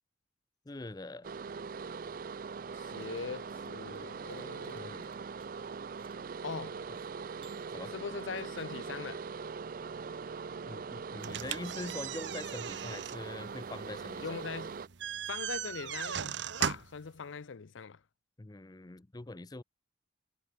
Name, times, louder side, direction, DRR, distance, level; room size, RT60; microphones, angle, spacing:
voice 1, 0.7-1.3 4.7-5.1 7.7-7.9 10.7-14.4 18.4-19.6, left 2 dB, 20° left, 0.5 m, -43 dB
sound 1, 1.2-14.9, right 5 dB, 45° right, 0.4 m, -42 dB
voice 2, 2.7-5.0 6.4-6.8 7.9-9.3 14.2-14.8 15.3-18.0, left 5 dB, 80° left, 0.6 m, -41 dB
sound 2, 2.9-6.4 7.4-8.3, right 5 dB, 30° right, 6.2 m, -64 dB
sound 3, 11.2-17.1, right 8 dB, 65° right, 0.8 m, -38 dB
head